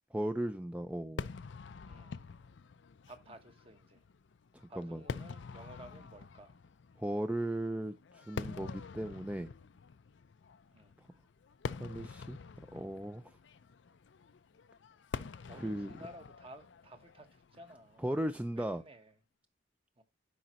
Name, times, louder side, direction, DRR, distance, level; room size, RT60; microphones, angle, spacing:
voice 1, 0.1-1.3 4.8-5.0 7.0-9.5 11.8-12.4 12.7-13.4 15.6-15.9 18.0-18.8, right 1 dB, 10° right, 0.4 m, -36 dB
Fireworks, 1.2-18.5, left 5 dB, 85° left, 0.5 m, -46 dB
voice 2, 1.8-2.2 3.1-4.0 4.7-6.5 10.7-10.9 15.4-18.1 18.5-19.2 20.0-20.1, right 1 dB, 30° right, 1.1 m, -54 dB
11.5 x 5.2 x 2.9 m
head